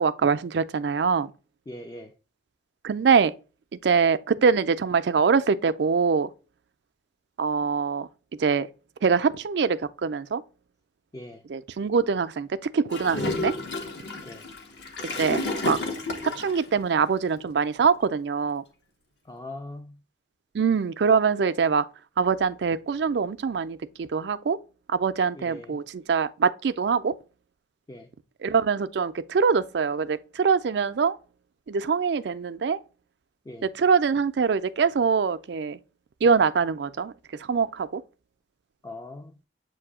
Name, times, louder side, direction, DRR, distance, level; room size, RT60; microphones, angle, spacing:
voice 1, 0.0-1.3 2.8-3.3 3.7-6.3 7.4-8.1 8.4-8.7 9.0-10.4 11.5-13.5 15.2-15.8 16.2-18.6 20.5-21.9 22.2-24.6 24.9-27.1 28.4-31.2 31.7-32.8 33.6-35.8 36.2-38.0, right 5 dB, 70° right, 0.4 m, -24 dB
voice 2, 1.7-2.1 11.1-11.4 14.2-14.5 19.2-20.0 25.3-25.8 27.9-28.1 33.5-33.7 38.8-39.3, left 1 dB, 20° left, 0.4 m, -41 dB
Gurgling / Toilet flush, 12.9-16.6, left 2 dB, 65° left, 1.0 m, -31 dB
7.5 x 2.6 x 4.9 m
head